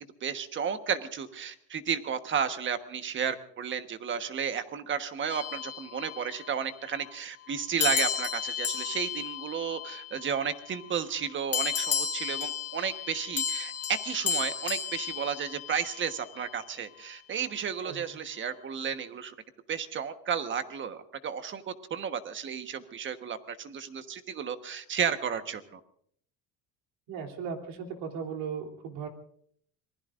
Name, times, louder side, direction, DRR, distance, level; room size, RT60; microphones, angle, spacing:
voice 1, 0.2-19.3 19.7-25.8, right 7 dB, 35° right, 9 dB, 1.3 m, -33 dB
sound 1, 5.3-6.5 7.8-10.5 11.5-16.1, left 7 dB, 45° left, 1.4 m, -33 dB
voice 2, 27.1-29.1, right 6 dB, 85° right, 3 dB, 3.4 m, -37 dB
26.0 x 20.5 x 2.6 m, 0.62 s
cardioid pair, 135°, 33 cm